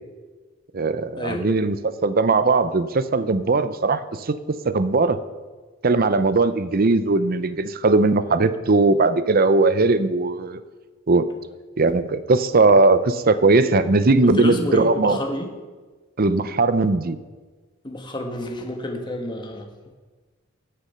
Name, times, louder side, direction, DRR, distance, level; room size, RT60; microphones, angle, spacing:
voice 1, 0.7-5.2 5.8-10.6 11.1-11.3 11.8-15.2 16.2-17.2, right 3 dB, 50° right, 13 dB, 0.7 m, -19 dB
voice 2, 14.4-15.5 17.8-19.7, left 1 dB, 25° left, 2 dB, 1.4 m, -29 dB
19.0 x 6.9 x 5.6 m, 1.3 s
head